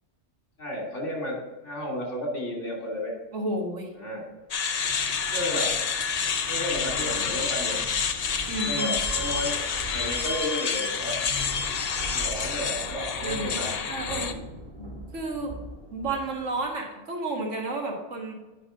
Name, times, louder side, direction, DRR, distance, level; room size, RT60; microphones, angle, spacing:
voice 1, 0.6-3.1 4.0-4.2 5.3-5.8 6.5-7.9 8.6-11.2 12.1-14.2 14.8-14.9, left 1 dB, 85° left, -2 dB, 3.1 m, -33 dB
voice 2, 3.3-3.9 8.5-9.0 13.2-14.4 15.1-15.5 15.9-18.3, right 2 dB, 85° right, 1 dB, 1.9 m, -31 dB
sound 1, 4.5-14.3, left 6 dB, 50° left, 0.5 m, -28 dB
sound 2, 4.5-16.7, right 1 dB, 45° right, 1.6 m, -41 dB
9.8 x 5.4 x 3.7 m, 1.1 s
omnidirectional pair, 1.2 m